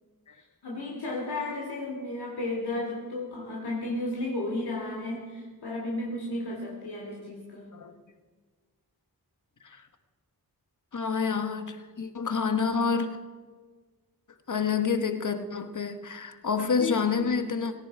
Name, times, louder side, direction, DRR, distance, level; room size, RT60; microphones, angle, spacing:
voice 1, 0.3-7.7 16.6-16.9, left 2 dB, 90° left, -2 dB, 2.8 m, -33 dB
voice 2, 10.9-13.2 14.5-17.7, left 5 dB, 55° left, 9 dB, 1.2 m, -28 dB
18.0 x 17.0 x 4.8 m, 1.5 s
wide cardioid pair, 85°, 38 cm